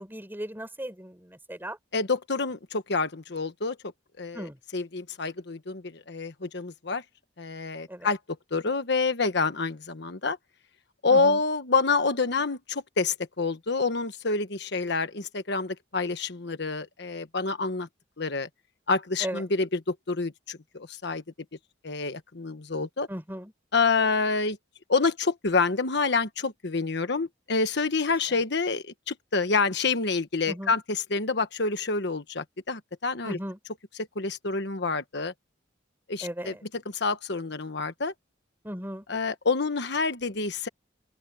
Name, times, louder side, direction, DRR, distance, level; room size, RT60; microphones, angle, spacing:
voice 1, 0.0-1.8 4.3-4.6 7.9-8.1 11.1-11.4 19.2-19.4 23.1-23.5 28.3-28.4 30.5-30.7 33.2-33.6 36.2-36.6 38.6-39.0, equal, 10° right, 4.3 m, -37 dB
voice 2, 1.9-3.8 4.2-4.5 4.7-7.0 7.4-8.2 8.5-10.4 11.0-17.9 18.2-18.5 18.9-21.2 21.8-23.1 23.7-24.6 24.9-33.4 34.1-35.3 36.1-38.1 39.1-40.7, left 4 dB, 65° left, 1.3 m, -27 dB
open air
head